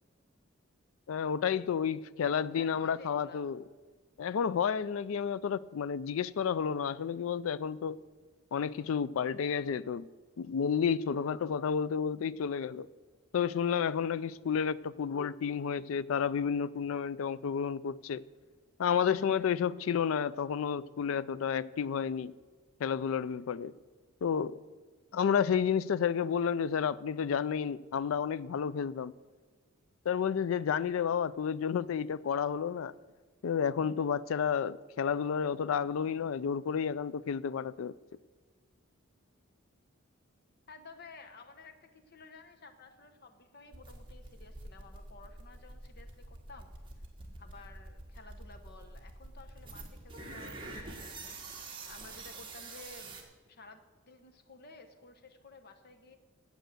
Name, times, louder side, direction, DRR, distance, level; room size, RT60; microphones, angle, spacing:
voice 1, 1.1-3.6 4.2-8.0 8.5-10.1 10.4-12.9 13.3-18.2 18.8-22.3 22.8-23.7 24.2-24.6 25.1-29.1 30.1-32.9 33.4-37.9, left 7 dB, 80° left, 0.4 m, -31 dB
voice 2, 2.2-3.5 40.7-46.7 47.4-51.4 51.9-56.2, left 3 dB, 50° left, 1.0 m, -54 dB
sound 1, 43.7-53.2, right 3 dB, 25° right, 1.5 m, -45 dB
9.0 x 8.1 x 7.8 m
head